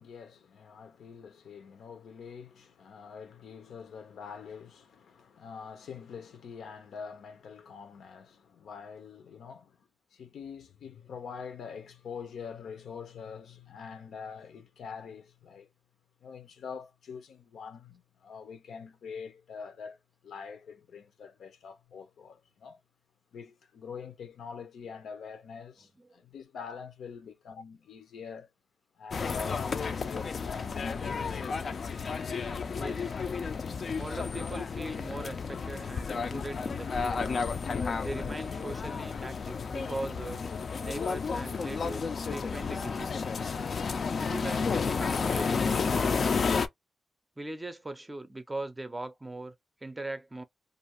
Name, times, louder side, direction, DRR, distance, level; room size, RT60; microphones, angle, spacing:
voice 1, 0.0-15.7 16.2-22.8 23.3-28.5 29.0-31.1, left 6 dB, 80° left, 0.7 m, -45 dB
sound 1, 29.1-46.7, left 5 dB, 50° left, 0.4 m, -32 dB
voice 2, 32.8-33.2 34.0-37.3 38.0-40.4 40.8-43.1 44.1-46.4 47.4-49.6 49.8-50.4, right 2 dB, 15° right, 0.5 m, -40 dB
2.5 x 2.4 x 3.0 m
cardioid pair, 110°, 0 cm